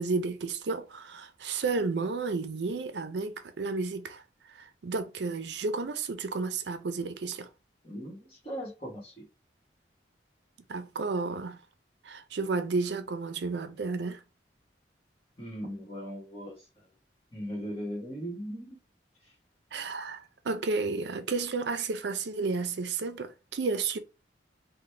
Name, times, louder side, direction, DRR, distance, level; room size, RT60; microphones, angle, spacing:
voice 1, 0.0-4.2 4.5-7.5 10.7-11.6 12.0-14.2 19.7-24.0, right 4 dB, 75° right, 0.5 m, -32 dB
voice 2, 7.8-9.3 15.4-16.9 17.3-18.8 19.2-19.3, equal, 30° left, 1.4 m, -39 dB
4.0 x 2.2 x 3.2 m
head